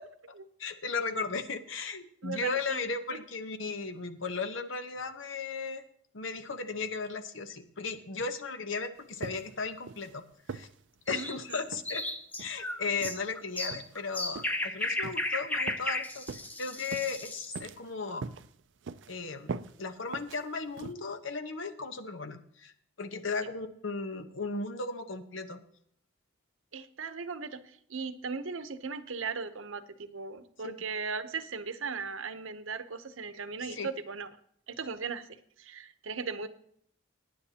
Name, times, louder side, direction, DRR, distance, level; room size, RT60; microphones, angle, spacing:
voice 1, 0.6-5.8 6.1-10.2 10.5-10.7 11.1-12.0 12.4-16.2 16.6-18.3 19.1-22.7 23.0-25.6 30.6-30.7 33.7-33.9, left 4 dB, 75° left, 9 dB, 1.0 m, -36 dB
voice 2, 2.2-2.8 11.1-11.6 26.7-34.3 34.7-35.3 35.6-36.5, right 5 dB, 80° right, 11 dB, 0.8 m, -38 dB
sound 1, 9.2-9.6 9.9-10.1 10.5-10.7 11.1-11.3 11.7-11.9 12.4-12.6 13.0-13.2 13.7-14.0 14.3-14.6 15.0-15.3 15.7-15.9 16.3-16.5 16.9-17.2 17.5-17.9 18.2-18.5 18.8-19.1 19.5-19.7 20.1-20.4 20.8-20.9, right 5 dB, 65° right, 0.4 m, -41 dB
sound 2, 11.1-17.6, left 2 dB, 10° left, 0.5 m, -35 dB
18.5 x 9.7 x 2.9 m, 0.67 s
head